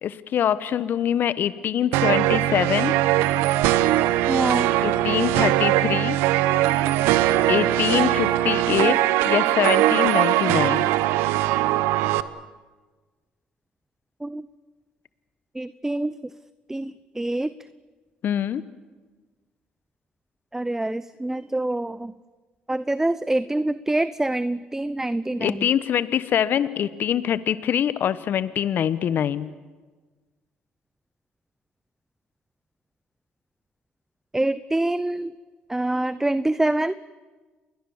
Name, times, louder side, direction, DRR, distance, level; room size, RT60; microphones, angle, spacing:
voice 1, 0.0-2.9 4.8-6.2 7.5-9.0 9.2-10.9 18.2-18.6 25.4-29.5, left 9 dB, 60° left, 15 dB, 1.0 m, -24 dB
sound 1, 1.9-12.2, right 14 dB, 80° right, 1.0 m, -21 dB
voice 2, 4.3-4.7 14.2-14.4 15.6-16.1 16.7-17.5 20.5-22.1 22.7-25.7 34.3-35.3 35.7-36.9, right 1 dB, 10° right, 15 dB, 0.7 m, -25 dB
28.5 x 21.0 x 7.2 m, 1.3 s
hypercardioid pair, 60°, 4 cm